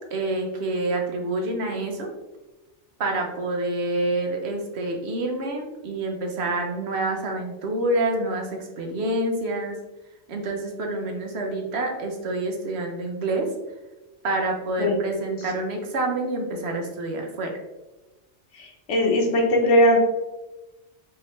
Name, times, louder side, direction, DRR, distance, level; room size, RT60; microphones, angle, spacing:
voice 1, 0.1-2.1 3.0-9.8 10.3-13.5 14.2-17.6, right 2 dB, 70° right, 2 dB, 1.0 m, -27 dB
voice 2, 14.8-15.2 18.6-20.0, left 1 dB, 80° left, 0 dB, 1.2 m, -20 dB
4.9 x 2.8 x 3.0 m, 1.0 s
omnidirectional pair, 1.2 m